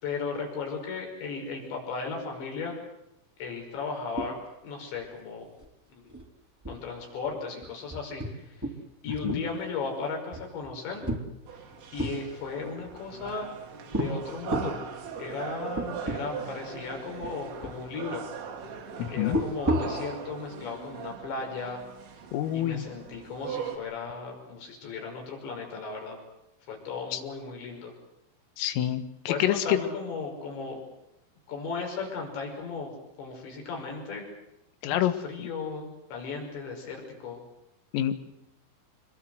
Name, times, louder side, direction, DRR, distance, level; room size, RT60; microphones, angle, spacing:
voice 1, 0.0-2.8 3.4-4.4 4.6-5.5 5.9-6.1 6.7-8.6 9.0-11.0 11.9-13.5 13.9-14.8 15.2-18.3 19.1-21.8 22.5-26.2 26.7-27.9 29.3-30.8 31.5-34.3 34.9-37.4, left 4 dB, 60° left, 2 dB, 7.7 m, -36 dB
sound 1, 4.2-4.7 4.9-5.0 5.4-5.7 6.1-6.2 6.6-8.8 9.1-9.8 10.3-12.2 12.9-13.5 13.9-14.1 14.5-14.8 15.4-15.5 15.8-16.2 16.5-16.6 17.2-17.8 19.2-20.0, right 1 dB, 5° right, 2.3 m, -32 dB
sound 2, 11.5-23.8, right 7 dB, 75° right, 5.2 m, -40 dB
voice 2, 19.0-19.4 22.3-22.8 27.1-27.2 28.6-29.8 34.8-35.2 37.9-38.1, left 12 dB, 85° left, 10 dB, 4.3 m, -27 dB
26.0 x 22.5 x 8.0 m, 0.86 s
omnidirectional pair, 5.8 m